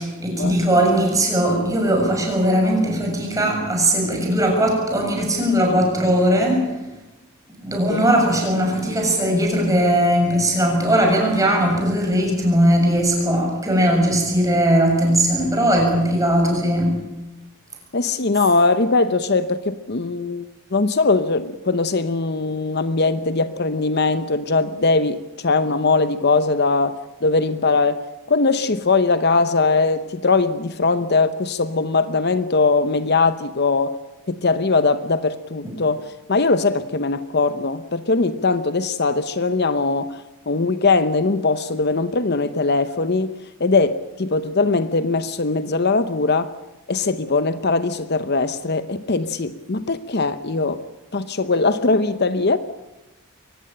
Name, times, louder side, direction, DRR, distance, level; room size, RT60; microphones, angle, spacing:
voice 1, 0.0-6.6 7.6-17.0, right 1 dB, 15° right, 1 dB, 7.0 m, -19 dB
voice 2, 17.9-20.4 20.7-28.0 28.3-33.9 34.3-40.2 40.5-43.3 43.6-46.5 46.9-50.8 51.1-52.6, left 3 dB, 50° left, 12 dB, 0.8 m, -20 dB
23.5 x 18.0 x 9.0 m, 1.0 s
head